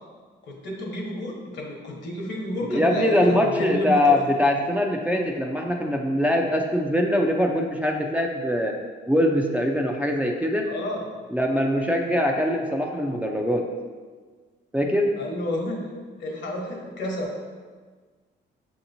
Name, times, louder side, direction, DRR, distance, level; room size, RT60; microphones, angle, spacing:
voice 1, 0.4-4.1 10.7-11.0 15.2-15.8 16.2-17.4, left 1 dB, 65° left, -1 dB, 1.1 m, -31 dB
voice 2, 2.7-8.7 9.1-10.7 11.3-13.7 14.7-15.1, left 1 dB, 5° right, 0 dB, 0.4 m, -22 dB
6.5 x 2.9 x 2.6 m, 1.5 s
cardioid pair, 90°, 20 cm